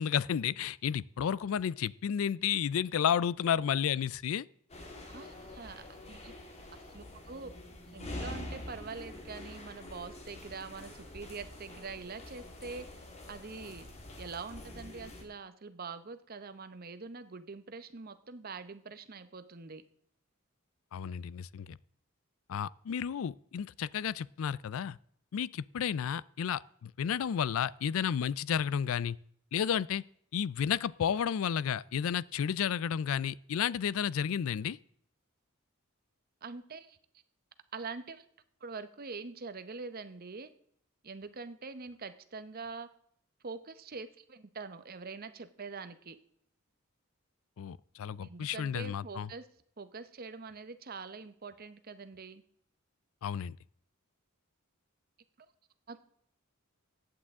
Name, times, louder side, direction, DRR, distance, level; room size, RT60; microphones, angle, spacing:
voice 1, 0.0-4.5 20.9-21.8 22.5-25.0 25.3-29.2 29.5-30.0 30.3-34.8 47.6-49.3 53.2-53.6, left 8 dB, 70° left, 0.4 m, -32 dB
sound 1, 4.7-15.2, left 1 dB, 30° left, 1.8 m, -46 dB
voice 2, 5.1-6.3 6.9-7.5 7.9-13.0 13.3-13.9 14.2-19.8 36.4-37.0 37.7-38.2 38.6-40.5 41.0-42.9 43.4-46.2 48.2-49.5 49.8-52.4 55.9-56.0, right 4 dB, 45° right, 0.8 m, -44 dB
15.0 x 8.8 x 3.6 m
head